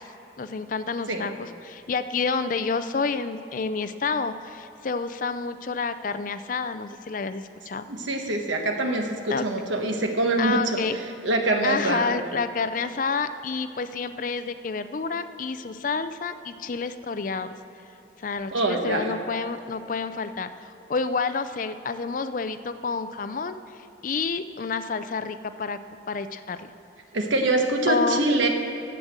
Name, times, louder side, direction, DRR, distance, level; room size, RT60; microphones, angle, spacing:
voice 1, 0.4-7.8 9.3-9.5 10.4-11.0 11.6-17.5 18.2-23.6 24.0-25.8 26.1-26.7 27.9-28.3, left 4 dB, 45° left, 11 dB, 0.4 m, -29 dB
voice 2, 7.9-12.1 18.5-19.2 27.1-28.5, right 2 dB, 80° right, 3 dB, 1.2 m, -25 dB
10.0 x 8.0 x 7.4 m, 2.9 s
head